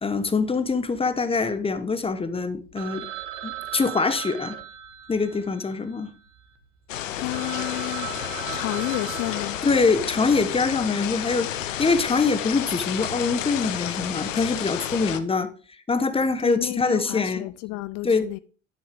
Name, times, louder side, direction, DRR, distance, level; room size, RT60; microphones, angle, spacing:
voice 1, 0.0-3.1 3.4-4.6 5.1-6.1 9.6-15.5 15.9-17.5 18.0-18.3, left 4 dB, 15° left, 1.0 m, -24 dB
Telephone, 2.8-6.6 7.0-7.1 7.3-10.2, right 13 dB, 50° right, 1.3 m, -38 dB
sound 1, 6.9-15.2, left 11 dB, 80° left, 0.9 m, -31 dB
voice 2, 7.2-8.2 8.5-9.6 16.4-18.4, left 20 dB, 45° left, 0.4 m, -31 dB
10.0 x 7.8 x 3.5 m
hypercardioid pair, 75°, 38 cm